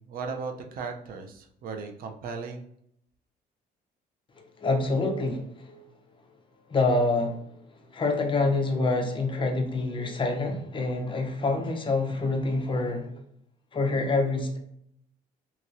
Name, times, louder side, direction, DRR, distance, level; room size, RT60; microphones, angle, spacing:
voice 1, 0.0-2.7, right 5 dB, 60° right, 4 dB, 0.5 m, -36 dB
voice 2, 4.6-5.8 6.7-7.4 7.9-13.1 13.7-14.6, left 3 dB, 30° left, 3 dB, 0.6 m, -26 dB
2.9 x 2.8 x 2.6 m, 0.71 s
cardioid pair, 110°, 17 cm